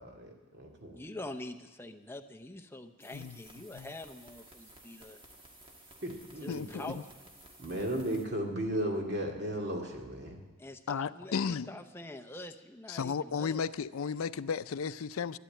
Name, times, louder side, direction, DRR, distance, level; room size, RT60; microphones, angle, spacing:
voice 1, 0.0-0.9 6.0-6.9 7.6-10.4, right 1 dB, 50° right, 2.2 m, -35 dB
voice 2, 0.9-5.2 6.4-7.1 10.6-13.6, left 2 dB, 10° left, 0.6 m, -45 dB
sound 1, 3.0-8.3, right 1 dB, 25° right, 1.5 m, -55 dB
voice 3, 10.9-11.7 12.9-15.4, left 6 dB, 85° left, 0.4 m, -34 dB
12.5 x 11.5 x 8.8 m
head